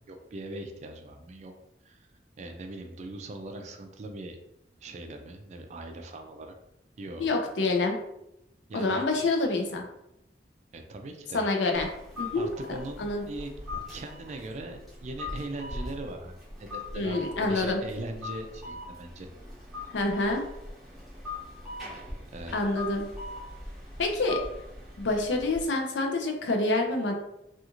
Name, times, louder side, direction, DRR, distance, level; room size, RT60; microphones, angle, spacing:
voice 1, 0.0-1.5 1.8-2.1 2.4-4.4 4.8-6.5 7.0-7.3 8.7-9.0 10.7-11.5 12.4-13.5 13.9-19.3 22.3-22.5, right 2 dB, 40° right, 4 dB, 0.3 m, -40 dB
voice 2, 7.2-8.0 8.7-9.9 11.3-11.9 12.2-12.5 13.0-13.2 16.9-17.8 19.9-20.4 22.5-23.1 24.0-24.4 25.0-27.1, left 2 dB, 85° left, 3 dB, 0.5 m, -27 dB
sound 1, 11.7-25.7, left 2 dB, ahead, 0.8 m, -41 dB
2.4 x 2.4 x 2.9 m, 0.84 s
head